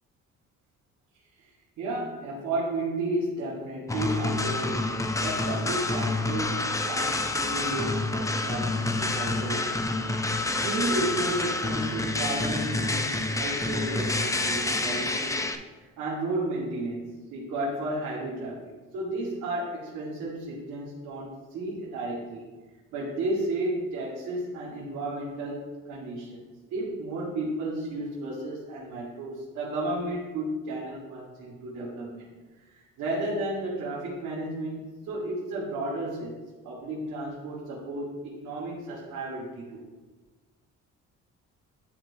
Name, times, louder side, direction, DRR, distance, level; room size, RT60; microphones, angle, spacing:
voice 1, 1.8-9.9 10.6-22.5 22.9-26.4 26.7-32.3 32.7-36.4 36.6-39.8, right 2 dB, 90° right, -6 dB, 1.5 m, -33 dB
sound 1, 3.9-15.5, left 2 dB, 10° left, 0.5 m, -28 dB
10.5 x 4.6 x 2.7 m, 1.3 s
cardioid pair, 90°, 30 cm